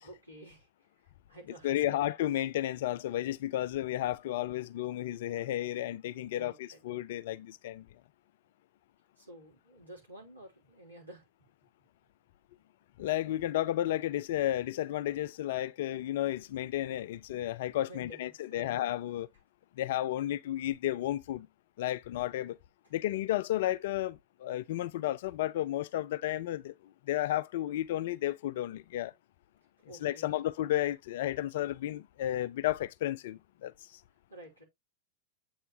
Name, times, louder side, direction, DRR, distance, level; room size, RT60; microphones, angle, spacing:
voice 1, 0.0-0.7 1.3-2.0 6.3-6.8 9.2-11.2 17.9-18.7 29.9-30.4 34.3-34.6, right 1 dB, 85° right, 3.1 m, -51 dB
voice 2, 1.6-7.8 13.0-19.3 19.8-21.5 21.8-22.6 22.9-26.7 27.1-29.1 30.0-33.7, left 13 dB, 55° left, 0.4 m, -32 dB
7.9 x 4.4 x 2.7 m
figure-of-eight pair, 90°, 0 cm